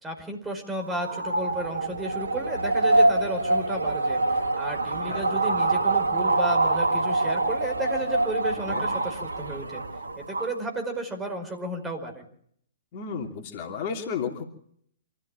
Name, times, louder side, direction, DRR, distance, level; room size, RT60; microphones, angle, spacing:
voice 1, 0.0-9.8 10.1-12.2, right 1 dB, 10° right, 4 dB, 5.0 m, -33 dB
sound 1, 0.8-10.6, right 2 dB, 80° right, 1.7 m, -25 dB
voice 2, 12.9-14.5, left 6 dB, 45° left, 3 dB, 2.9 m, -33 dB
27.0 x 14.5 x 8.9 m, 0.67 s
figure-of-eight pair, 115°, 0 cm